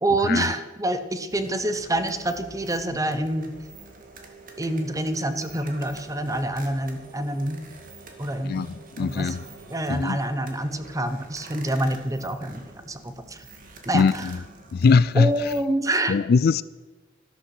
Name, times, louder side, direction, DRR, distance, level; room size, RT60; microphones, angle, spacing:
voice 1, 0.0-3.5 4.6-7.6 8.2-8.7 9.0-9.3 9.7-13.4 13.8-14.3 15.1-16.1, right 1 dB, 15° right, 1.0 m, -27 dB
sound 1, 1.3-15.6, right 3 dB, 45° right, 2.1 m, -46 dB
voice 2, 8.4-9.4 9.9-10.2 13.9-14.4 14.7-15.3 16.1-16.6, left 5 dB, 50° left, 0.4 m, -21 dB
13.0 x 12.5 x 6.0 m
head